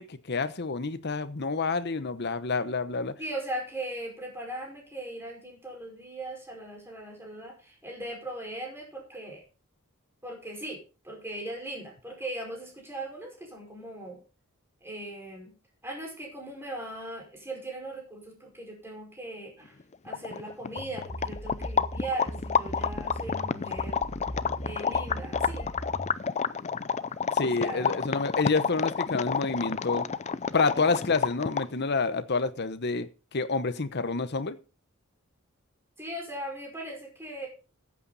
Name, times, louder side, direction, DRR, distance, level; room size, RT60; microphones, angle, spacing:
voice 1, 0.0-3.2 27.3-30.1 30.5-34.6, left 4 dB, 55° left, 13 dB, 0.9 m, -28 dB
voice 2, 3.2-9.4 10.2-14.2 14.8-15.5 15.8-19.8 20.0-24.0 24.6-25.7 27.4-28.1 36.0-37.5, right 1 dB, 10° right, 0 dB, 5.2 m, -39 dB
sound 1, 19.8-19.9 20.1-31.8, left 6 dB, 30° left, 0.5 m, -30 dB
sound 2, 20.8-26.1, equal, 15° left, 1.4 m, -39 dB
14.0 x 8.6 x 4.1 m, 0.33 s
head